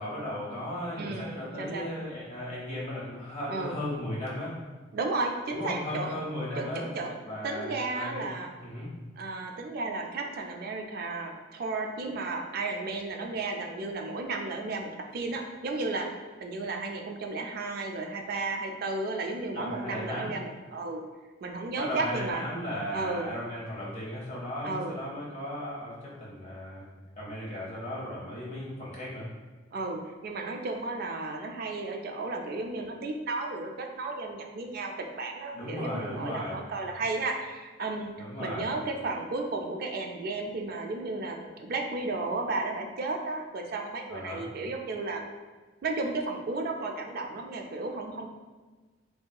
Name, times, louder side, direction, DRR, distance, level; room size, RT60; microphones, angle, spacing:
voice 1, 0.0-4.5 5.5-6.8 7.2-8.2 8.6-8.9 19.5-20.3 21.8-26.8 27.2-29.3 35.5-36.7 38.2-38.7 44.1-44.5, left 1 dB, 35° left, -6 dB, 0.9 m, -36 dB
voice 2, 1.0-1.9 3.5-3.7 4.9-6.1 6.6-7.2 7.4-8.6 9.2-16.1 16.4-21.0 21.4-22.4 22.9-23.3 24.6-25.0 29.7-38.1 38.4-45.3 45.8-48.3, right 3 dB, 50° right, 3 dB, 0.3 m, -33 dB
3.0 x 2.7 x 2.2 m, 1.3 s
head